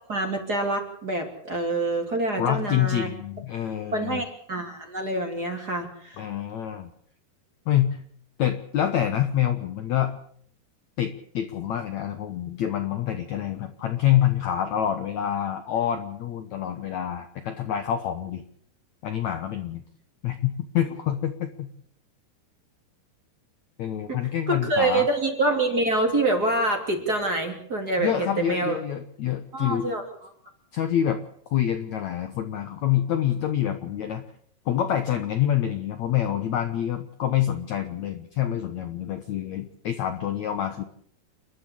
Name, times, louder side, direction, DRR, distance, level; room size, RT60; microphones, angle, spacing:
voice 1, 0.1-3.1 3.9-6.2 24.1-24.2 24.5-28.8 29.5-30.0, right 2 dB, 25° right, 3 dB, 3.1 m, -26 dB
voice 2, 2.4-4.2 6.2-6.9 7.7-8.0 8.4-10.2 11.0-18.4 19.0-19.8 20.2-21.7 23.8-25.1 28.0-29.9 30.7-31.2 31.5-34.2 34.7-40.8, left 11 dB, 65° left, 8 dB, 1.9 m, -26 dB
29.5 x 11.5 x 8.6 m, 0.64 s
omnidirectional pair, 4.5 m